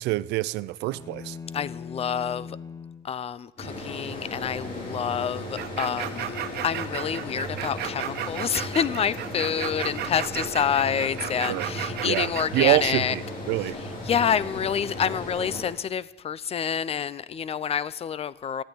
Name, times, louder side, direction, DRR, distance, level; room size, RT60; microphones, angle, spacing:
voice 1, 0.0-1.4 11.5-11.7 12.0-13.8, right 18 dB, 90° right, 0.5 m, -26 dB
sound 1, 0.8-3.1, left 5 dB, 20° left, 1.2 m, -40 dB
voice 2, 1.5-2.6 3.0-6.3 6.6-13.1 14.0-18.6, left 8 dB, 35° left, 0.6 m, -28 dB
sound 2, 3.6-15.7, left 1 dB, 55° left, 6.9 m, -36 dB
sound 3, 5.6-12.7, right 11 dB, 75° right, 1.2 m, -34 dB
13.5 x 9.2 x 9.7 m
cardioid pair, 110°, 17 cm